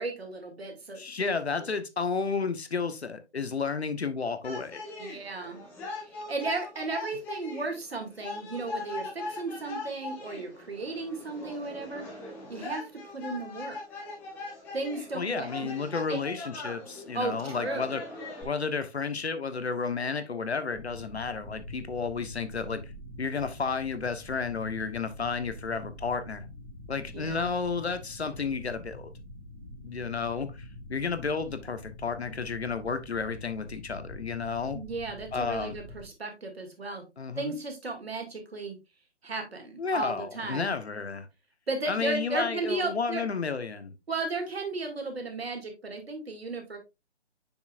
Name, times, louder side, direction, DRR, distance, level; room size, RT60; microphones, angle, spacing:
voice 1, 0.0-1.3 5.0-5.6 6.0-12.1 12.5-13.8 14.7-15.7 16.1-16.2 17.1-17.9 27.1-27.5 34.7-37.0 37.4-38.8 39.2-40.7 41.7-43.2 44.1-46.8, right 3 dB, 60° right, 2.3 m, -35 dB
voice 2, 1.0-4.8 15.1-18.0 18.4-22.8 23.2-26.4 26.9-29.1 29.8-34.8 35.3-35.8 37.2-37.5 39.8-41.3 41.9-43.9, left 5 dB, 65° left, 1.1 m, -32 dB
sound 1, 4.4-18.4, left 2 dB, 5° left, 0.8 m, -40 dB
sound 2, 20.7-36.1, left 1 dB, 25° right, 2.8 m, -45 dB
7.1 x 6.1 x 2.5 m
figure-of-eight pair, 145°, 34 cm